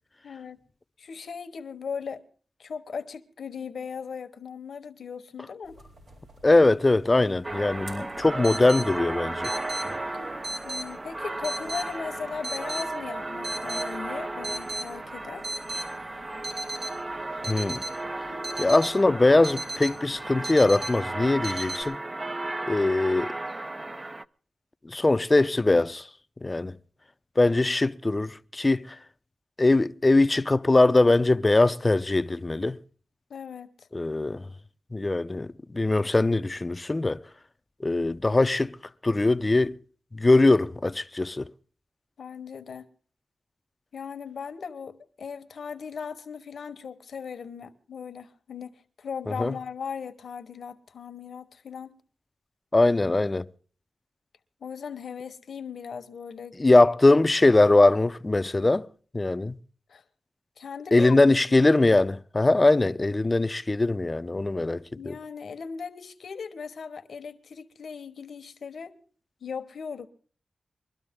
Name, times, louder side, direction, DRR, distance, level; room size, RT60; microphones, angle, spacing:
voice 1, 0.2-0.6 1.0-2.2 2.6-5.8 10.6-15.4 33.3-33.9 42.2-42.8 43.9-52.0 54.6-56.9 59.9-60.0 60.6-61.1 61.5-61.6 65.0-68.9 69.4-70.1, left 6 dB, 75° left, 1.1 m, -38 dB
sound 1, 5.7-21.8, right 2 dB, 85° right, 4.7 m, -39 dB
voice 2, 6.4-9.5 17.4-17.8 18.6-22.0 22.7-23.3 24.8-26.1 26.4-26.8 27.4-29.0 29.6-32.8 33.9-34.5 34.9-37.2 37.8-38.8 39.0-39.8 40.1-41.5 49.3-49.5 52.7-53.5 56.6-58.9 59.1-59.6 60.9-65.1, left 2 dB, 30° left, 0.6 m, -21 dB
sound 2, 7.4-24.2, right 2 dB, 30° right, 0.6 m, -35 dB
22.5 x 12.5 x 3.7 m
cardioid pair, 45°, 0 cm